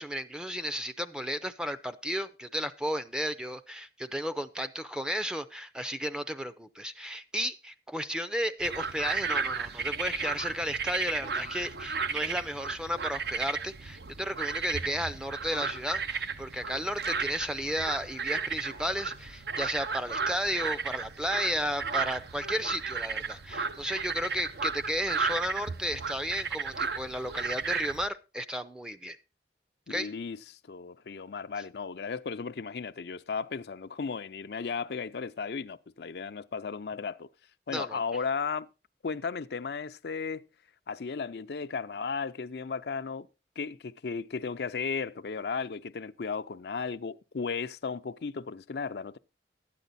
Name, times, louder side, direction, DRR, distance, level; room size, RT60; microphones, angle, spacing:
voice 1, 0.0-29.2 29.9-30.1 37.7-38.0, equal, 5° right, 0.5 m, -33 dB
sound 1, 8.6-28.1, right 5 dB, 65° right, 0.7 m, -34 dB
voice 2, 29.9-37.3 37.7-38.7 39.0-40.5 40.9-43.3 43.6-49.2, left 5 dB, 70° left, 0.5 m, -35 dB
12.5 x 9.2 x 4.1 m
head